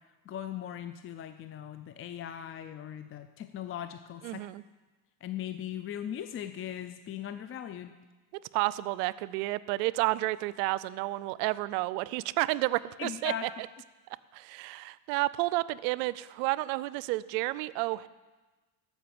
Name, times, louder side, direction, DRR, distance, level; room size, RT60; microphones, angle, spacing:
voice 1, 0.3-4.4 5.2-7.9 13.0-13.5, left 10 dB, 30° left, 9 dB, 0.4 m, -39 dB
voice 2, 4.2-4.6 8.5-13.5 14.3-18.1, right 19 dB, 80° right, 19 dB, 0.5 m, -31 dB
14.0 x 5.6 x 6.0 m, 1.2 s
supercardioid pair, 90°, 49 cm